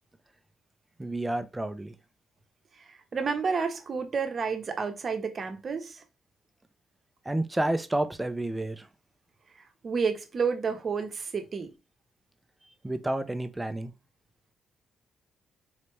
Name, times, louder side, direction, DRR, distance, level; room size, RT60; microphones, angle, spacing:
voice 1, 1.0-1.9 7.3-8.9 12.8-13.9, right 1 dB, 10° right, 0.6 m, -30 dB
voice 2, 2.8-6.0 9.8-11.7, right 5 dB, 40° right, 0.9 m, -30 dB
4.0 x 3.2 x 3.2 m
cardioid pair, 90°, 0 cm